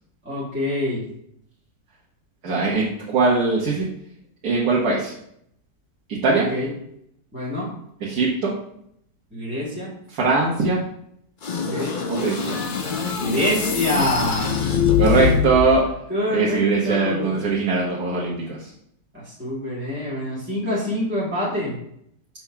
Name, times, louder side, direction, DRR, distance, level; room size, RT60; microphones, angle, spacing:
voice 1, 0.2-1.0 6.3-6.7 7.3-7.7 9.3-9.9 11.6-12.0 13.2-14.7 16.1-17.4 19.1-21.7, left 1 dB, 5° right, -7 dB, 1.6 m, -26 dB
voice 2, 2.4-3.9 4.4-5.1 6.2-6.5 8.0-8.5 10.1-10.8 12.1-12.6 15.0-15.9 16.3-18.7, right 3 dB, 60° right, -4 dB, 1.6 m, -21 dB
sound 1, 11.4-15.8, left 7 dB, 55° left, 0.5 m, -23 dB
6.0 x 3.6 x 5.7 m, 0.72 s
omnidirectional pair, 1.9 m